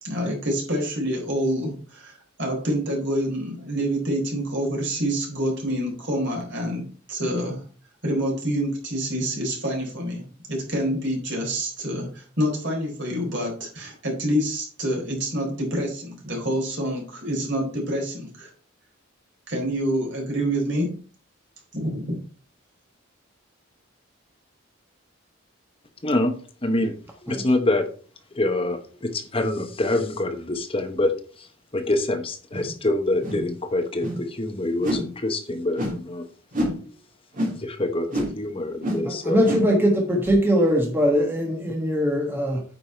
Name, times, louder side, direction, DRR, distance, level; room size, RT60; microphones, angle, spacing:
voice 1, 0.0-7.6 8.0-18.5 19.5-21.0 21.7-22.1, equal, 60° right, 0 dB, 4.0 m, -27 dB
voice 2, 26.6-26.9 27.2-27.9 28.4-31.1 31.7-36.2 37.6-39.4, left 2 dB, 25° left, 6 dB, 0.9 m, -25 dB
sound 1, 32.5-32.7 33.2-33.5 34.0-34.2 34.8-35.1 35.7-36.0 36.5-36.8 37.3-37.6 38.1-38.4 38.8-39.1 39.4-39.7 40.2-40.3, equal, 40° right, 2.8 m, -27 dB
voice 3, 39.0-42.6, equal, 10° right, 1 dB, 1.4 m, -21 dB
9.3 x 5.4 x 4.4 m, 0.40 s
head